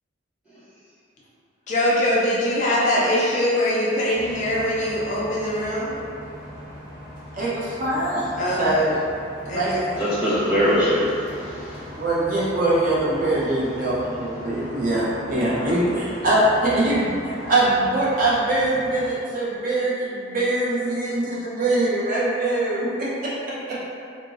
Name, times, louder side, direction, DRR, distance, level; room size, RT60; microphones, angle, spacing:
voice 1, 1.7-5.9 8.4-8.9 9.5-9.8, left 1 dB, 35° left, -6 dB, 0.3 m, -22 dB
sound 1, 4.1-19.1, equal, 65° right, 1.2 m, -40 dB
voice 2, 7.3-9.0 9.4-10.0 11.9-17.1 17.4-23.3 23.7-23.8, right 1 dB, 40° right, -7 dB, 0.5 m, -23 dB
voice 3, 10.0-11.9 15.5-15.9, equal, 5° right, -13 dB, 0.9 m, -23 dB
3.6 x 2.0 x 2.3 m, 2.5 s
head